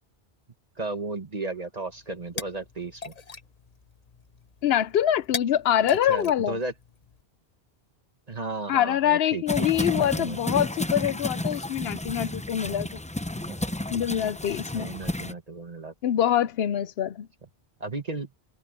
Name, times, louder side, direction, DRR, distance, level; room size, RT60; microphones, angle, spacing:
voice 1, 0.8-3.1 6.1-6.7 8.3-9.7 9.9-10.7 13.5-13.7 14.7-15.9 17.8-18.3, right 3 dB, 40° right, 1.7 m, -34 dB
sound 1, 1.9-7.2, left 4 dB, 40° left, 1.1 m, -40 dB
voice 2, 4.6-6.6 8.7-12.9 13.9-15.0 16.0-17.3, left 10 dB, 75° left, 0.8 m, -25 dB
sound 2, 9.5-15.3, left 1 dB, 10° left, 0.5 m, -31 dB
omnidirectional pair, 1.1 m